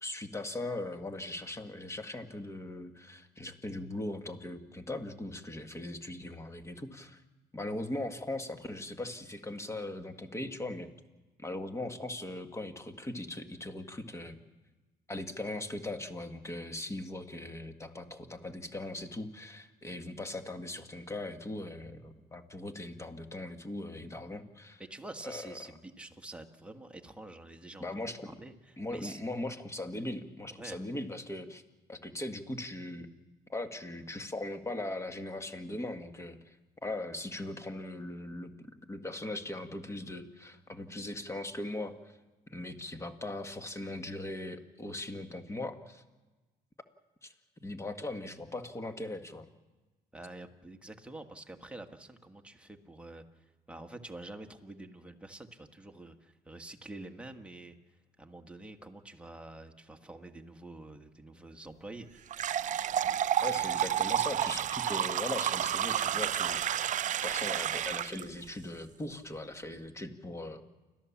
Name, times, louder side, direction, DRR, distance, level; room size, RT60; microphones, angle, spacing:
voice 1, 0.0-7.2 7.5-10.9 11.4-14.4 15.1-24.8 25.2-25.6 27.8-28.3 28.8-31.6 31.9-33.1 33.5-36.6 36.8-38.5 38.9-42.2 42.5-46.0 47.2-47.3 47.6-49.5 63.4-66.9 67.2-70.6, left 2 dB, 15° left, 7 dB, 1.7 m, -39 dB
voice 2, 24.8-29.2 30.5-30.8 50.1-62.3, right 2 dB, 5° right, 4 dB, 1.5 m, -47 dB
sound 1, 62.3-68.2, right 10 dB, 45° right, 0.6 m, -30 dB
29.5 x 13.0 x 7.3 m, 1.2 s
cardioid pair, 105°, 17 cm